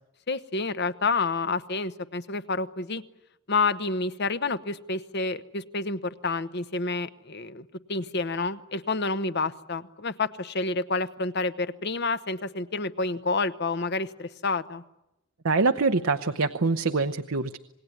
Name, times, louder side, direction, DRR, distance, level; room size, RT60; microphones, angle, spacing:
voice 1, 0.3-3.0 3.5-14.8, left 3 dB, 55° left, 12 dB, 1.0 m, -29 dB
voice 2, 15.4-17.6, right 3 dB, 80° right, 8 dB, 0.9 m, -24 dB
27.5 x 20.0 x 9.6 m, 0.90 s
head